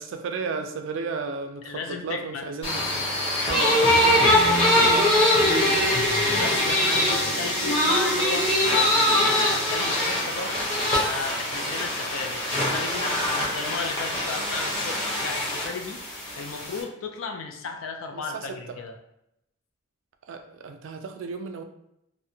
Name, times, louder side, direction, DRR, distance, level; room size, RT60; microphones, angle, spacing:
voice 1, 0.0-3.1 3.5-4.7 5.4-5.8 18.1-18.8 20.3-21.6, right 4 dB, 70° right, 6 dB, 0.3 m, -34 dB
voice 2, 1.6-2.5 4.9-5.7 6.3-10.7 11.0-16.0 16.3-18.9, left 4 dB, 85° left, 5 dB, 0.4 m, -35 dB
sound 1, 2.6-16.8, left 1 dB, 25° left, 0.6 m, -23 dB
2.6 x 2.1 x 2.7 m, 0.81 s
head